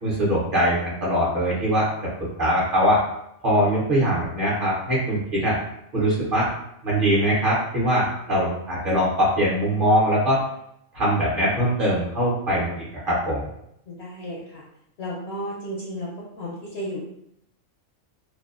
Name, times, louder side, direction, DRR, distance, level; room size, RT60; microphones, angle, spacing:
voice 1, 0.0-1.9 2.4-3.0 3.4-5.6 5.9-6.5 6.8-10.4 10.9-13.5, equal, 50° right, -6 dB, 0.7 m, -22 dB
voice 2, 13.9-14.6 15.0-16.1 16.4-17.1, equal, 65° left, -5 dB, 0.7 m, -33 dB
2.6 x 2.0 x 2.4 m, 0.76 s
omnidirectional pair, 1.4 m